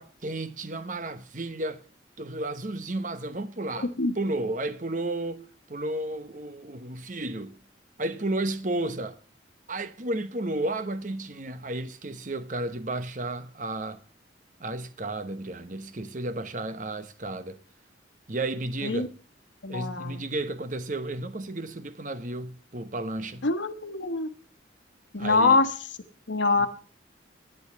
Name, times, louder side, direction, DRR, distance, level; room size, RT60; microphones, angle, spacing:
voice 1, 0.0-1.8 2.2-3.9 4.1-7.6 8.0-9.2 9.7-14.0 14.6-17.6 18.3-19.1 19.7-23.5 25.2-25.6 26.6-26.7, right 2 dB, 45° right, 1.0 m, -33 dB
voice 2, 3.8-4.1 18.8-19.1 19.6-20.2 23.4-24.3 25.1-25.7 26.3-26.7, left 3 dB, 85° left, 1.1 m, -24 dB
11.0 x 8.8 x 7.0 m
head